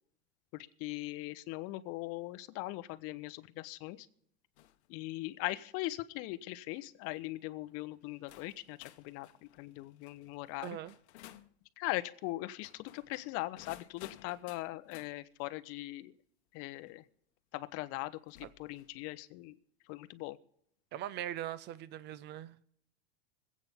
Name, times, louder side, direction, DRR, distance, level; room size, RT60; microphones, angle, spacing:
voice 1, 0.5-4.1 4.9-9.3 9.6-10.8 11.8-16.1 16.5-17.0 17.5-19.5 19.9-20.4, left 18 dB, 45° left, 0.9 m, -40 dB
sound 1, 4.6-4.9 5.4-5.7 6.5-6.8 7.7-7.8 8.3-11.5 12.5-15.1 16.9-17.0 18.3-19.0, left 14 dB, 80° left, 1.0 m, -57 dB
voice 2, 10.6-10.9 18.4-18.5 20.9-22.6, right 12 dB, 30° right, 0.6 m, -41 dB
25.5 x 8.6 x 3.6 m
supercardioid pair, 145°, 33 cm